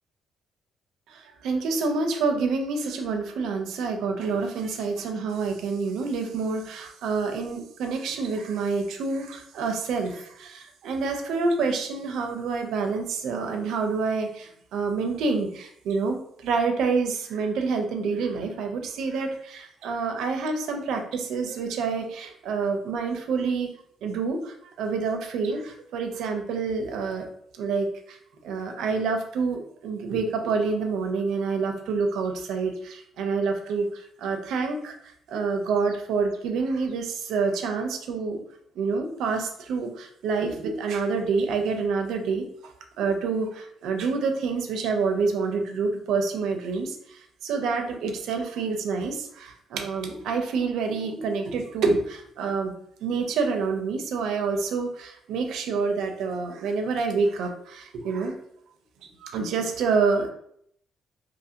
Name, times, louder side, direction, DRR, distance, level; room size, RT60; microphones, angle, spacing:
voice 1, 1.1-23.7 24.0-27.2 27.6-28.2 28.4-34.9 35.3-38.4 38.8-42.7 43.0-52.7 53.0-58.3 59.0-60.3, right 4 dB, 75° right, 4 dB, 0.5 m, -27 dB
2.7 x 2.5 x 2.8 m, 0.69 s
cardioid pair, 165°, 0 cm